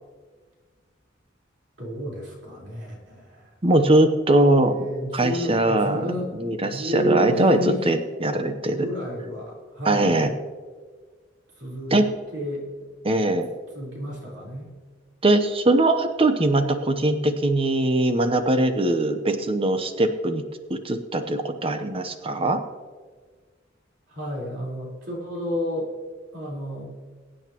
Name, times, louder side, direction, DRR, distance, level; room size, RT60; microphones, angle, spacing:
voice 1, 1.8-3.7 4.6-6.3 6.6-7.9 8.7-10.2 11.6-12.0 12.3-12.7 13.2-13.4 13.7-14.7 24.1-25.9 26.3-26.8, equal, 65° right, -4 dB, 4.2 m, -31 dB
voice 2, 3.6-4.7 5.1-6.1 6.4-7.6 7.9-8.9 9.9-10.3 11.9-12.1 13.0-13.5 15.2-20.4 20.7-22.6, right 1 dB, 30° right, 8 dB, 0.9 m, -21 dB
22.0 x 8.9 x 3.0 m, 1.5 s
head